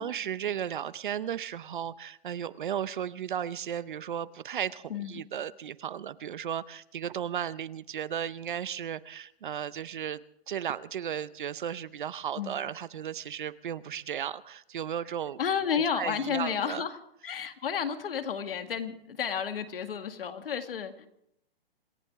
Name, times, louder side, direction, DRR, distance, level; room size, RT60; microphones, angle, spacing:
voice 1, 0.0-10.2 10.5-15.4 15.9-16.8, right 9 dB, 55° right, 17 dB, 0.7 m, -35 dB
voice 2, 4.9-5.2 12.4-12.6 15.4-21.1, left 7 dB, 65° left, 7 dB, 2.1 m, -32 dB
27.0 x 14.5 x 3.6 m, 0.73 s
hypercardioid pair, 175°, 30 cm